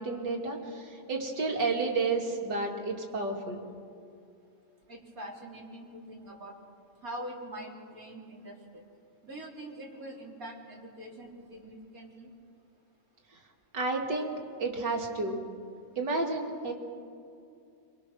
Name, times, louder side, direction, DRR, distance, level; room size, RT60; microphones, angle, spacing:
voice 1, 0.0-3.6 13.3-13.4 13.7-15.4 16.0-16.7, right 3 dB, 85° right, 1 dB, 3.2 m, -31 dB
voice 2, 4.9-6.6 7.0-8.8 9.2-12.3, right 1 dB, 55° right, -1 dB, 3.9 m, -44 dB
26.0 x 24.0 x 6.4 m, 2.6 s
omnidirectional pair, 1.8 m